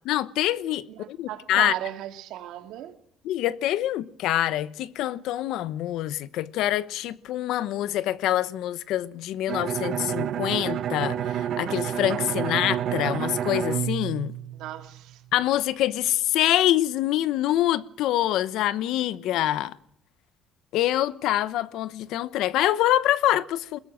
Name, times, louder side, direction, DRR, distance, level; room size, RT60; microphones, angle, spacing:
voice 1, 0.1-1.7 3.2-14.3 15.3-19.7 20.7-23.8, left 13 dB, 75° left, 1.0 m, -25 dB
voice 2, 0.9-2.9 14.6-15.2, right 13 dB, 85° right, 3.0 m, -35 dB
Bowed string instrument, 9.5-15.1, right 10 dB, 50° right, 0.9 m, -29 dB
21.5 x 17.0 x 7.7 m
cardioid pair, 170°, 0 cm